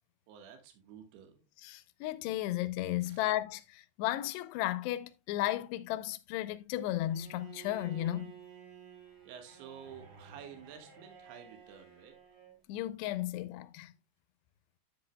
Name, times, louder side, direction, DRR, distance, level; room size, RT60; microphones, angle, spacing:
voice 1, 0.3-1.4 3.0-3.2 9.3-12.2, right 8 dB, 70° right, 3.4 m, -51 dB
voice 2, 1.6-8.4 12.7-13.9, left 14 dB, 80° left, 2.7 m, -34 dB
Bowed string instrument, 7.1-12.6, right 7 dB, 50° right, 3.5 m, -53 dB
10.0 x 8.2 x 2.2 m
omnidirectional pair, 5.0 m